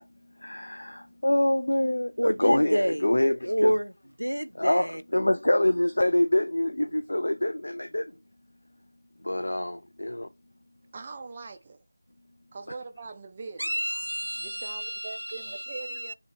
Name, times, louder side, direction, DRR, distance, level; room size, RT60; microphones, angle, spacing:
voice 1, 0.4-3.7 4.5-8.1 9.2-10.3, left 1 dB, 60° left, 0.6 m, -25 dB
voice 2, 2.2-3.1 3.4-3.9 4.2-5.0 13.6-16.1, equal, 85° right, 0.5 m, -29 dB
voice 3, 10.9-11.8 12.5-13.9 14.4-16.1, right 4 dB, 15° right, 0.4 m, -42 dB
3.9 x 3.3 x 4.2 m
figure-of-eight pair, 170°, 0 cm